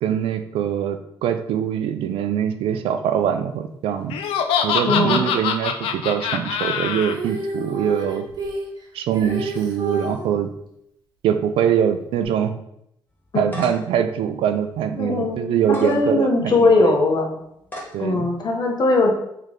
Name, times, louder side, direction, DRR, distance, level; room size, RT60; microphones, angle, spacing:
voice 1, 0.0-4.2 4.6-8.2 8.9-10.5 11.2-12.5 13.3-16.9 17.9-18.3, right 9 dB, 75° right, 9 dB, 0.4 m, -23 dB
Laughter, 4.1-7.1, left 7 dB, 75° left, 0.4 m, -24 dB
voice 2, 4.9-5.3 13.3-13.6 15.0-17.3 18.0-19.1, left 2 dB, 50° left, 1 dB, 1.0 m, -20 dB
Female singing, 7.0-10.3 12.2-12.3, right 1 dB, 55° right, 1.4 m, -30 dB
sound 1, 13.2-14.0 14.5-14.6 15.6-16.0 16.6-16.7 17.6-18.0, equal, 20° left, 1.5 m, -35 dB
3.3 x 3.2 x 3.8 m, 0.77 s
supercardioid pair, 55°, 9 cm